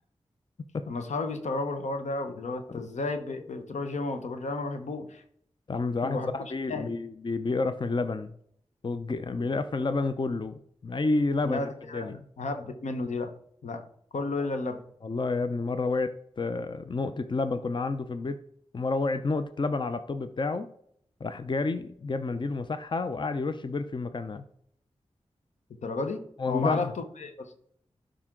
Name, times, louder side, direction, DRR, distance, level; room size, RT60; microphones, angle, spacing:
voice 1, 0.9-5.2 6.0-6.3 6.7-6.9 9.3-9.4 11.4-12.1 12.4-13.3 13.6-13.8 14.1-14.8 25.8-26.2 26.5-27.3, left 3 dB, 85° left, 7 dB, 1.0 m, -32 dB
voice 2, 5.7-8.3 8.8-12.2 15.0-18.4 18.7-20.7 21.2-24.4 26.4-26.9, left 3 dB, 40° left, 11 dB, 0.6 m, -30 dB
12.0 x 5.1 x 3.8 m, 0.67 s
cardioid pair, 45°, 12 cm